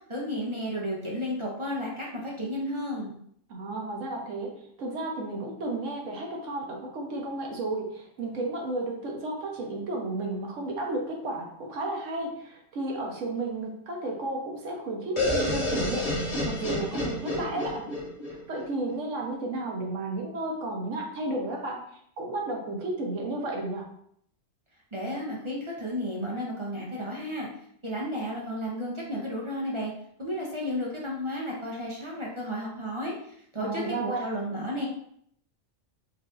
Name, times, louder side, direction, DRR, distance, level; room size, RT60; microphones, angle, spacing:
voice 1, 0.1-3.2 24.9-27.5 27.8-29.9 30.2-34.9, equal, 40° right, -3 dB, 0.4 m, -33 dB
voice 2, 3.5-17.9 18.5-21.8 22.2-23.9 33.6-34.3, right 2 dB, 70° right, 0 dB, 1.1 m, -33 dB
sound 1, 15.2-18.9, left 1 dB, 60° left, 1.6 m, -29 dB
4.7 x 2.6 x 2.4 m, 0.67 s
omnidirectional pair, 1.4 m